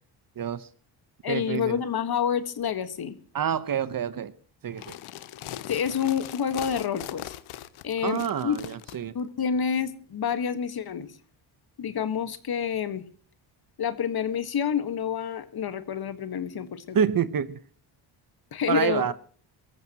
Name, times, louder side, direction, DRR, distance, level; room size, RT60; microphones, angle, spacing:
voice 1, 0.4-0.7 1.3-1.8 3.3-4.3 4.6-4.9 8.0-9.1 16.9-17.6 18.7-19.1, right 8 dB, 45° right, 1.1 m, -27 dB
voice 2, 1.2-3.2 5.7-7.3 7.8-8.6 9.1-11.1 11.8-13.0 13.8-17.0 18.5-19.1, left 8 dB, 50° left, 1.7 m, -28 dB
sound 1, 4.7-9.0, left 13 dB, 85° left, 1.1 m, -40 dB
24.0 x 14.0 x 3.0 m
cardioid pair, 105°, 48 cm